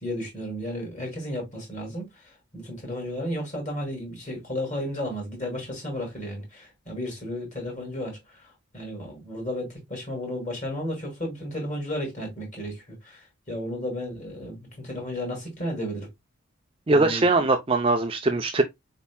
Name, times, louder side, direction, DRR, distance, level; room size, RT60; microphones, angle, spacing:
voice 1, 0.0-2.2 2.5-8.4 8.7-16.1 16.9-17.3, equal, 35° left, 2.4 m, -33 dB
voice 2, 16.9-18.6, right 2 dB, 25° right, 0.5 m, -21 dB
4.6 x 4.1 x 2.2 m
head